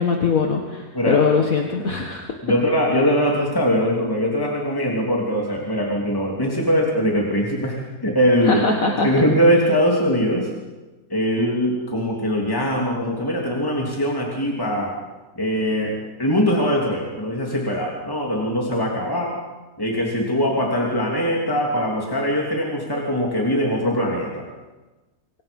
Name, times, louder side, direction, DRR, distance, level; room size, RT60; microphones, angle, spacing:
voice 1, 0.0-2.3 8.4-9.1, left 4 dB, 55° left, 2 dB, 2.0 m, -21 dB
voice 2, 2.4-8.6 9.0-10.5 11.1-14.9 15.3-19.3 19.8-24.4, equal, 15° left, -2 dB, 3.1 m, -21 dB
27.0 x 23.0 x 5.5 m, 1.2 s
omnidirectional pair, 1.7 m